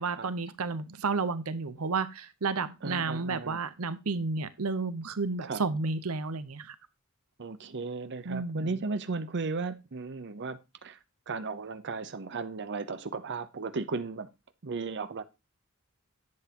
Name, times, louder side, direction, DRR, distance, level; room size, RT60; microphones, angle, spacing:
voice 1, 0.0-6.7 8.2-8.7, right 4 dB, 90° right, 0.8 m, -32 dB
voice 2, 2.8-3.6 5.4-5.6 7.4-11.0 11.3-14.3 14.6-15.2, right 4 dB, 55° right, 0.7 m, -35 dB
10.5 x 8.0 x 2.9 m
head